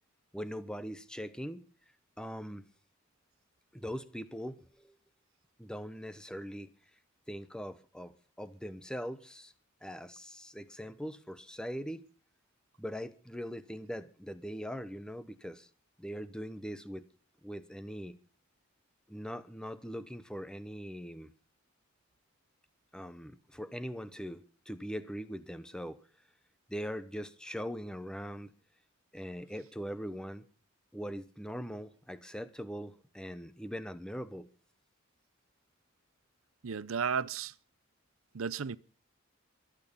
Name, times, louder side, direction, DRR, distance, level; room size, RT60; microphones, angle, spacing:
voice 1, 0.3-1.6 2.2-2.7 3.7-5.0 5.6-6.7 7.3-9.5 9.8-12.0 12.8-15.7 16.0-17.0 17.4-18.2 19.1-21.3 22.9-26.0 26.7-28.5 29.1-30.4 30.9-34.5, equal, 5° left, 0.8 m, -41 dB
voice 2, 36.6-37.5 38.3-38.8, right 6 dB, 80° right, 0.6 m, -33 dB
23.0 x 9.1 x 5.5 m
head